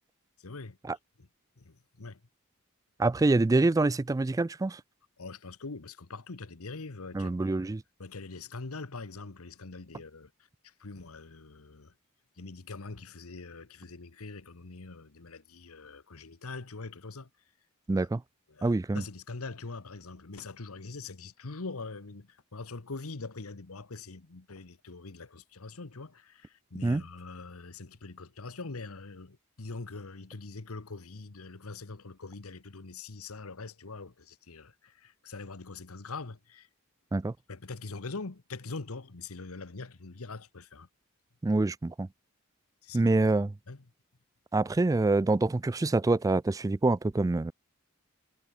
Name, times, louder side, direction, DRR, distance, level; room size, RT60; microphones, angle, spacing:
voice 1, 0.4-0.8 1.2-1.3 1.6-2.2 5.2-7.6 8.0-10.3 10.6-11.9 12.4-17.3 17.9-18.1 18.5-36.7 37.5-40.9 42.8-43.1 43.7-43.8, left 3 dB, 80° left, 1.2 m, -43 dB
voice 2, 3.0-4.8 7.1-7.8 17.9-18.2 18.6-19.0 26.8-27.0 37.1-37.3 41.4-42.1 42.9-43.5 44.5-47.5, right 2 dB, 15° right, 0.3 m, -26 dB
head